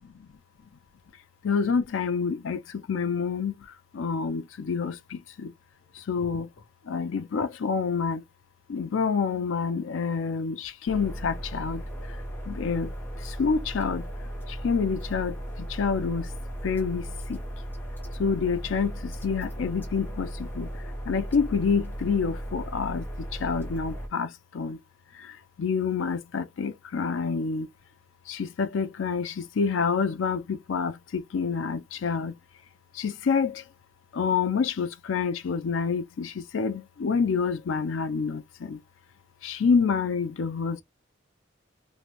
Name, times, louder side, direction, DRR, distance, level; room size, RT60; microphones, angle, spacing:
voice 1, 1.4-2.6 2.9-3.5 3.9-5.5 6.1-6.5 6.9-8.2 8.7-11.8 12.5-12.9 13.4-14.0 14.6-15.4 15.8-16.3 16.6-17.0 17.3-17.4 18.2-18.9 19.2-20.7 21.1-23.0 23.4-24.3 24.5-24.8 25.6-27.7 28.3-32.3 33.0-33.5 34.1-38.4 38.7-38.8 39.4-40.8, left 5 dB, 80° left, 0.4 m, -27 dB
sound 1, 10.9-24.1, equal, 10° left, 0.9 m, -36 dB
3.1 x 2.5 x 3.0 m
head